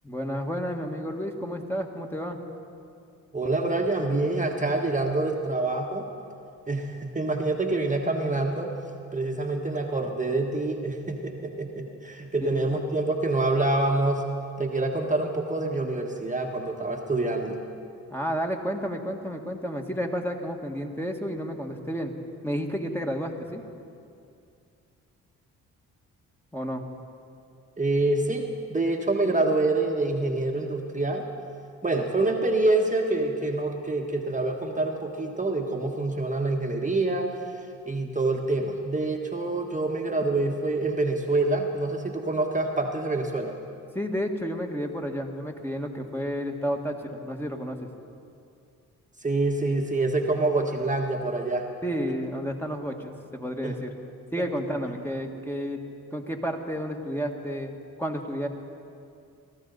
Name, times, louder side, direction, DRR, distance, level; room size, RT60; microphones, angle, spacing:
voice 1, 0.0-2.4 12.6-12.8 18.1-22.1 22.4-23.6 26.5-26.8 43.9-47.9 51.8-53.9 54.3-55.8 56.1-57.7 58.0-58.5, equal, 5° left, 2 dB, 1.7 m, -31 dB
voice 2, 3.3-6.1 6.7-8.7 9.1-14.2 14.6-17.6 27.8-31.3 31.8-37.3 37.8-43.5 49.2-51.7 53.6-53.8, right 2 dB, 20° right, 1 dB, 1.4 m, -26 dB
18.5 x 14.0 x 4.1 m, 2.4 s
hypercardioid pair, 45°, 36 cm